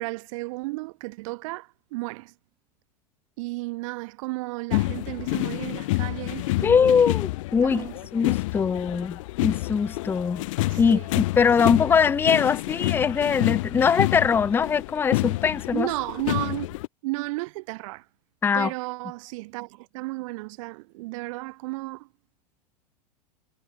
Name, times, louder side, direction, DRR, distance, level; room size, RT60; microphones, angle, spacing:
voice 1, 0.0-2.3 3.4-6.9 7.6-8.0 10.7-11.1 11.6-11.8 15.7-16.8 17.0-18.1 18.5-22.1, right 23 dB, 50° right, 3.4 m, -33 dB
sound 1, 4.7-16.9, left 19 dB, 50° left, 0.6 m, -28 dB
voice 2, 6.6-7.9 8.1-10.4 10.8-11.0 11.4-15.9 18.4-18.7, left 6 dB, 10° left, 0.5 m, -22 dB
figure-of-eight pair, 95°, 21 cm